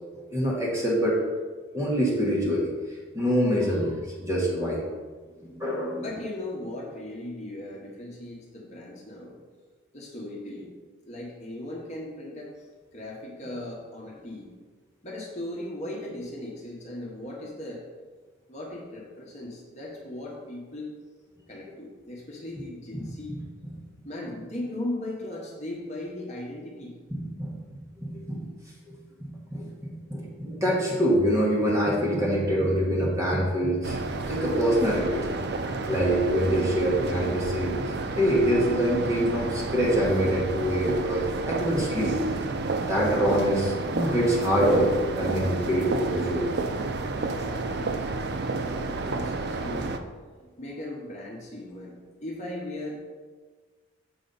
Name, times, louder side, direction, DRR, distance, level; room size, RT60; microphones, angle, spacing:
voice 1, 0.3-1.2 1.7-2.7 3.1-4.8 5.4-6.0 22.9-23.0 23.3-23.4 27.1-27.6 28.0-28.4 28.9-34.0 34.2-37.8 38.2-42.1 42.9-46.4, equal, 15° right, -4 dB, 1.2 m, -25 dB
voice 2, 6.0-9.4 9.9-10.7 11.0-12.7 12.9-14.5 15.0-17.9 18.5-20.9 21.5-23.3 24.0-27.0 47.1-48.1 48.6-50.0 50.6-53.1, left 1 dB, 35° left, -3 dB, 1.1 m, -38 dB
sound 1, 33.8-50.0, right 3 dB, 50° right, 0.4 m, -31 dB
6.9 x 4.9 x 4.0 m, 1.4 s
head